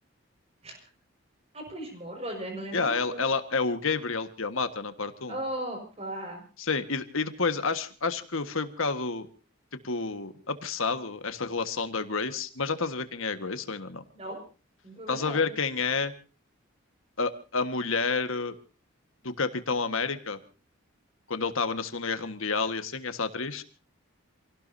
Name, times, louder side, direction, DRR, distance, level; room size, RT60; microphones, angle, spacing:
voice 1, 1.5-3.2 5.3-6.4 14.1-14.4 14.8-15.4, right 1 dB, 30° right, 4 dB, 5.4 m, -37 dB
voice 2, 2.7-5.4 6.6-9.3 9.8-14.0 15.1-16.1 17.2-18.5 19.2-20.4 21.3-23.6, left 4 dB, 75° left, 9 dB, 1.6 m, -29 dB
28.0 x 17.5 x 2.7 m, 0.35 s
head